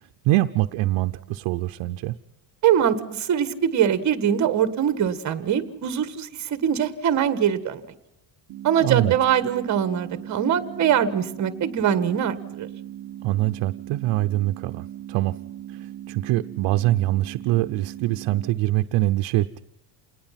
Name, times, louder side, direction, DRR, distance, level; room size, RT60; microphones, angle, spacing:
voice 1, 0.2-2.2 8.8-9.1 13.2-15.3 15.7-19.6, right 16 dB, 70° right, 7 dB, 0.7 m, -24 dB
voice 2, 2.6-7.8 8.6-12.7, right 9 dB, 35° right, 12 dB, 1.4 m, -22 dB
sound 1, 8.5-18.5, right 12 dB, 55° right, 1.4 m, -39 dB
28.0 x 19.5 x 5.8 m, 0.81 s
cardioid pair, 175°, 48 cm